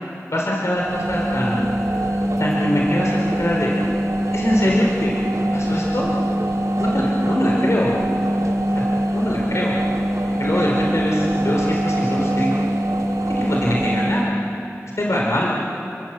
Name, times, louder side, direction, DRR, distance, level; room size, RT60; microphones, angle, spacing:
voice 1, 0.3-1.7 2.0-3.7 4.3-5.1 5.5-6.1 6.8-8.0 8.7-9.8 10.4-12.6 13.3-14.3 14.9-15.5, equal, 60° left, -3 dB, 4.1 m, -23 dB
sound 1, 0.7-14.3, right 1 dB, 80° right, 2.8 m, -23 dB
28.0 x 24.5 x 7.6 m, 2.9 s
wide cardioid pair, 55°, 6 cm